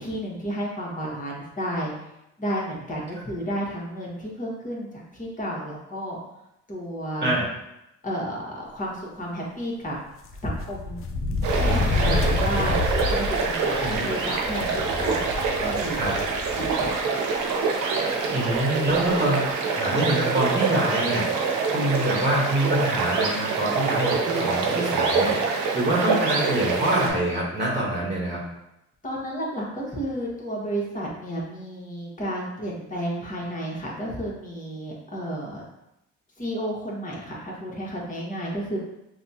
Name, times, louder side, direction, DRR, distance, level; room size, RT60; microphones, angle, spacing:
voice 1, 0.0-1.9 2.4-6.2 6.7-7.3 8.0-9.9 10.4-11.0 11.5-15.2 15.6-16.0 16.5-17.2 29.0-35.6 36.4-38.8, equal, 25° left, -4 dB, 1.4 m, -32 dB
sound 1, 10.2-17.0 17.3-17.4 18.5-18.6 18.9-19.1, left 3 dB, 45° left, 0.5 m, -28 dB
sound 2, 11.4-27.1, right 4 dB, 90° right, 0.7 m, -25 dB
voice 2, 18.3-19.5 19.8-28.4, right 1 dB, 25° right, -5 dB, 1.2 m, -25 dB
5.8 x 2.3 x 2.8 m, 0.86 s
cardioid pair, 90°, 30 cm